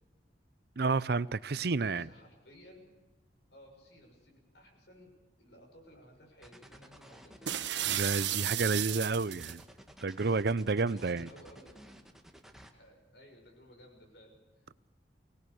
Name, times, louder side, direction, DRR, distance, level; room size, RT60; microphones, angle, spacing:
voice 1, 0.8-2.1 7.9-9.6 10.0-11.3, right 4 dB, 60° right, 0.6 m, -30 dB
voice 2, 1.8-2.8 3.5-5.1 5.4-7.6 10.9-11.9 12.7-14.9, equal, 65° left, 6.5 m, -57 dB
new order, 6.4-12.7, equal, ahead, 1.8 m, -54 dB
sound 1, 7.5-9.6, right 12 dB, 75° right, 1.1 m, -33 dB
24.0 x 19.0 x 7.0 m
head